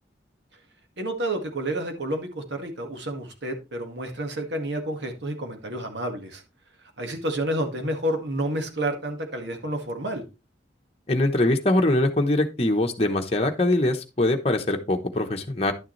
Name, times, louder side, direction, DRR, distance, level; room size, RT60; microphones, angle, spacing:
voice 1, 1.0-6.4 7.0-10.2, right 1 dB, 75° right, 5 dB, 1.8 m, -30 dB
voice 2, 11.1-15.7, left 1 dB, 30° left, 3 dB, 1.0 m, -23 dB
11.0 x 6.6 x 3.2 m, 0.28 s
head